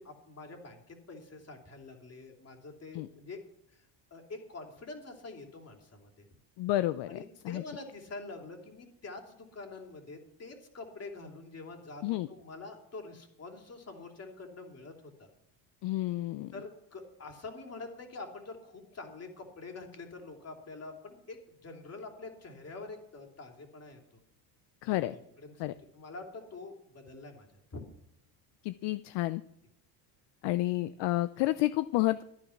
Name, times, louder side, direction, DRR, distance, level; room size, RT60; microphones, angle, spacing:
voice 1, 0.0-3.4 3.7-6.3 7.1-14.9 15.2-15.3 16.5-24.0 24.9-27.8, left 3 dB, 30° left, 3 dB, 3.2 m, -46 dB
voice 2, 6.6-7.6 12.0-12.3 15.8-16.5 24.8-25.1 25.6-25.7 28.6-29.4 30.4-32.2, left 17 dB, 60° left, 14 dB, 0.6 m, -30 dB
13.5 x 10.0 x 5.9 m, 0.78 s
supercardioid pair, 95°, 47 cm